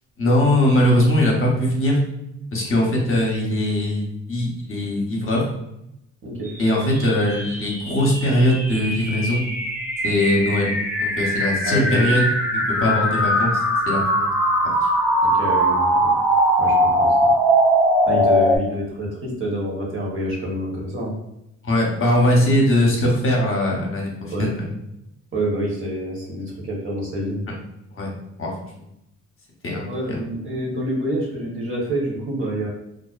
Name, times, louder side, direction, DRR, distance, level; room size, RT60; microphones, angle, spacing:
voice 1, 0.2-2.0 2.5-5.5 6.6-9.5 10.0-12.2 12.8-14.3 21.6-24.7 27.9-28.1 28.4-28.5 29.6-30.2, left 1 dB, 40° left, -1 dB, 0.8 m, -20 dB
sound 1, 6.7-18.6, equal, 5° right, 0.4 m, -20 dB
voice 2, 11.6-12.1 15.2-16.2 16.6-17.3 18.0-21.1 24.3-24.5 25.3-27.4 29.8-32.7, right 1 dB, 40° right, -3 dB, 1.1 m, -27 dB
2.4 x 2.1 x 2.3 m, 0.82 s
cardioid pair, 75°, 32 cm